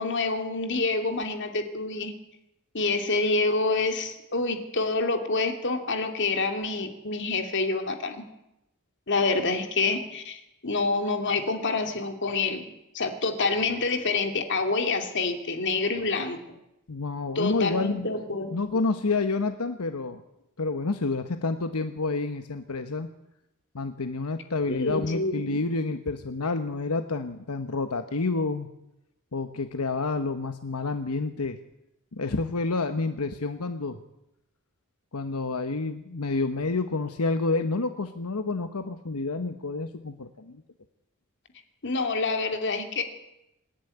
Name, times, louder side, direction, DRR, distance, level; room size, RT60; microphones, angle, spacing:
voice 1, 0.0-2.1 2.7-8.2 9.1-12.6 12.9-16.4 17.3-18.5 24.7-25.6 41.8-43.0, left 3 dB, 55° left, 5 dB, 2.7 m, -27 dB
voice 2, 16.9-18.1 18.5-20.2 20.6-23.1 23.7-28.7 29.3-31.6 32.1-34.0 35.1-40.6, left 3 dB, 85° left, 8 dB, 1.1 m, -29 dB
26.5 x 10.5 x 9.8 m, 0.87 s
head